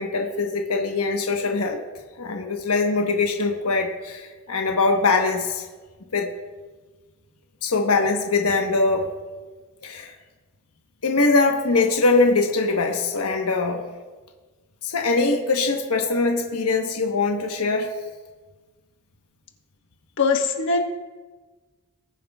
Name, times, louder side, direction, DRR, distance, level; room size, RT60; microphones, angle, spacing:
voice 1, 0.0-1.8 2.2-5.7 6.1-6.3 7.6-9.1 9.8-10.1 11.0-13.8 14.8-17.9, left 3 dB, 80° left, 2 dB, 1.1 m, -22 dB
voice 2, 20.2-20.8, left 4 dB, 60° left, 3 dB, 1.4 m, -21 dB
20.5 x 9.4 x 2.4 m, 1.3 s
head